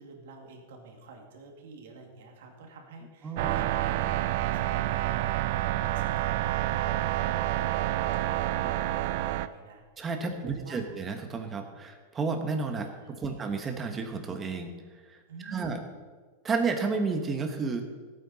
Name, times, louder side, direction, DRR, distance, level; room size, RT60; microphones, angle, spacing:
voice 1, 0.0-9.8 10.2-10.9 12.8-13.4 15.3-15.8, right 4 dB, 70° right, 2 dB, 2.4 m, -48 dB
sound 1, 3.4-9.5, right 14 dB, 50° right, 0.5 m, -28 dB
voice 2, 10.0-14.7 15.1-15.8 16.4-17.9, right 4 dB, 15° right, 5 dB, 1.3 m, -31 dB
15.5 x 8.9 x 4.2 m, 1.4 s
supercardioid pair, 155°, 0 cm